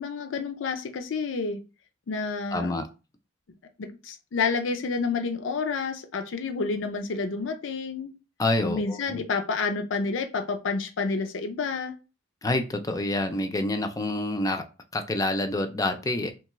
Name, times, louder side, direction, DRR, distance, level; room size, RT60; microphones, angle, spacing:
voice 1, 0.0-1.6 2.1-2.7 3.8-8.1 8.6-11.9, left 4 dB, 75° left, 0.5 m, -29 dB
voice 2, 2.5-2.9 8.4-9.0 12.4-14.6 14.9-16.3, left 2 dB, 20° left, 0.4 m, -27 dB
3.1 x 2.3 x 2.9 m
head